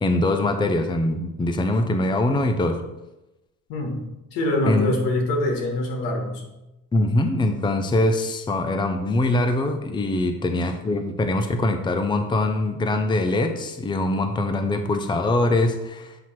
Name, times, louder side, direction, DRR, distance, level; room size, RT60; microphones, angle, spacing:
voice 1, 0.0-2.8 4.7-4.9 6.9-16.2, left 2 dB, 15° left, 7 dB, 0.6 m, -23 dB
voice 2, 3.7-6.4, left 1 dB, 80° left, 2 dB, 1.8 m, -25 dB
7.8 x 3.0 x 5.8 m, 0.96 s
cardioid pair, 105°, 34 cm